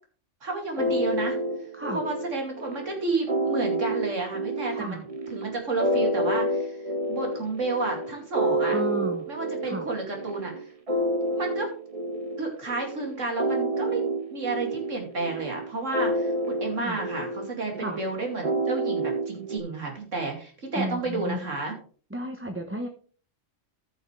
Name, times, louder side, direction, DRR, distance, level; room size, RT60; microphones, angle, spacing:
voice 1, 0.4-1.4 1.9-5.0 5.3-6.8 7.1-8.8 9.3-10.7 11.4-11.7 12.4-14.0 14.3-21.7, right 3 dB, 80° right, 1 dB, 2.9 m, -31 dB
sound 1, 0.8-19.6, right 1 dB, 30° right, 1.2 m, -29 dB
voice 2, 4.7-5.1 8.7-9.3 9.6-9.9 16.7-17.0 17.8-18.0 20.7-21.5 22.1-22.9, equal, 10° right, 3 dB, 0.8 m, -33 dB
14.5 x 6.6 x 3.3 m, 0.42 s
omnidirectional pair, 1.3 m